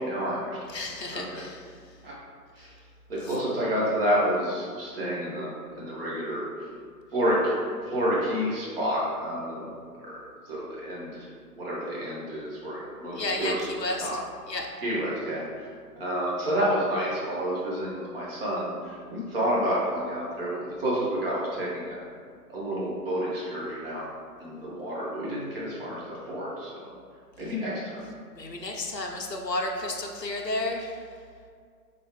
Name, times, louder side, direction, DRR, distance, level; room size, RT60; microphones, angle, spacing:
voice 1, 0.0-0.6 1.1-1.4 2.0-2.1 2.6-2.8 3.1-6.4 7.1-7.4 7.8-9.7 10.0-10.2 10.4-11.3 11.6-13.6 14.0-14.1 14.8-15.7 16.0-22.0 22.5-24.1 24.4-26.9 27.4-28.0, equal, 35° right, -7 dB, 1.3 m, -29 dB
voice 2, 0.7-2.0 2.6-2.7 3.2-3.4 13.1-14.1 14.5-14.7 28.3-31.2, left 2 dB, 90° left, 1 dB, 0.7 m, -32 dB
4.1 x 3.7 x 3.2 m, 2.2 s
figure-of-eight pair, 130°, 48 cm